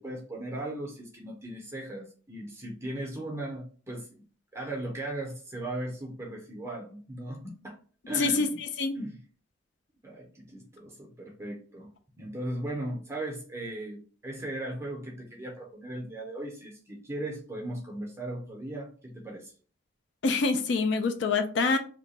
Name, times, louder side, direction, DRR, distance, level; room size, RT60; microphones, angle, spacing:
voice 1, 0.0-4.3 4.5-7.8 8.1-8.6 8.9-9.2 10.0-11.9 12.2-19.5, right 1 dB, 15° right, -1 dB, 0.6 m, -37 dB
voice 2, 20.2-21.8, left 4 dB, 65° left, 7 dB, 0.4 m, -25 dB
2.8 x 2.2 x 4.0 m, 0.40 s
head